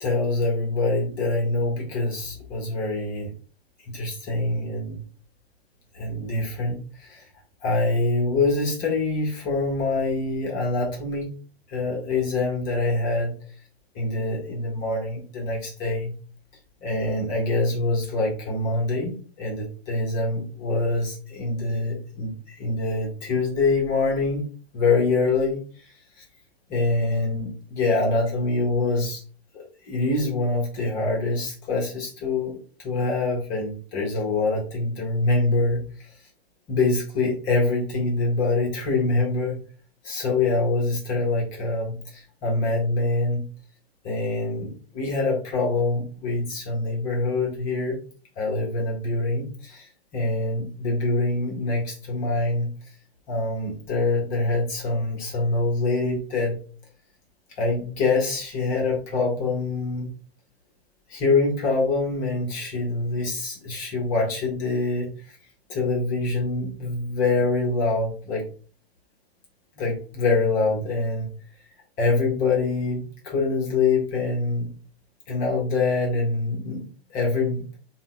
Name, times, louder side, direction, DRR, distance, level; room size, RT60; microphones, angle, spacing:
voice 1, 0.0-3.3 3.9-5.0 5.9-7.2 7.6-11.3 11.7-13.3 13.9-16.1 16.8-24.4 24.7-26.2 26.7-29.2 29.5-32.6 32.8-35.8 36.7-39.6 40.0-43.4 44.0-48.0 48.4-49.9 50.1-52.7 53.3-56.6 57.6-60.1 61.1-65.4 65.7-68.4 69.8-71.3 72.0-74.7 75.3-76.8 77.1-77.6, left 3 dB, 25° left, 0 dB, 0.9 m, -25 dB
3.8 x 2.2 x 3.9 m, 0.41 s
figure-of-eight pair, 110°, 32 cm